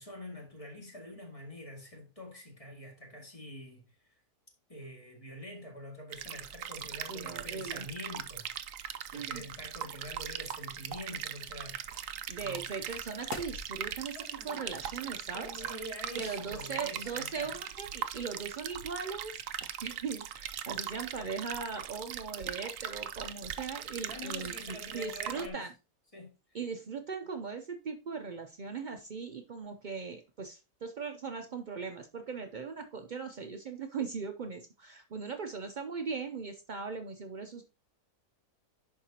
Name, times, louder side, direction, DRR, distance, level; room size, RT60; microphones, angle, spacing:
voice 1, 0.0-4.2 4.7-8.5 9.1-11.9 12.4-12.7 15.3-17.5 24.1-25.7 26.1-26.3, left 1 dB, 20° left, 2.1 m, -46 dB
sound 1, 6.1-25.5, right 10 dB, 65° right, 0.9 m, -40 dB
voice 2, 7.1-7.9 9.1-9.4 12.3-15.5 16.2-25.7 26.5-37.6, right 5 dB, 85° right, 0.4 m, -39 dB
sound 2, 11.3-19.7, left 3 dB, 80° left, 1.8 m, -52 dB
11.0 x 4.7 x 2.8 m
omnidirectional pair, 1.7 m